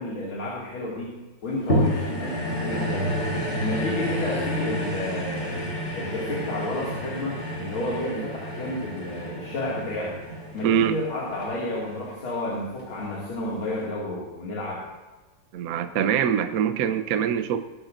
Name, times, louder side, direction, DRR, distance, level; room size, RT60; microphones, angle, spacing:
voice 1, 0.0-3.1 3.6-5.6 5.9-10.2 10.5-14.8, left 1 dB, 70° left, -5 dB, 3.2 m, -31 dB
sound 1, 1.7-12.2 12.8-12.9, equal, 30° left, 4.0 m, -30 dB
voice 2, 10.6-11.0 15.5-17.6, right 9 dB, 70° right, 9 dB, 0.8 m, -24 dB
19.5 x 12.5 x 2.6 m, 1.2 s
omnidirectional pair, 2.3 m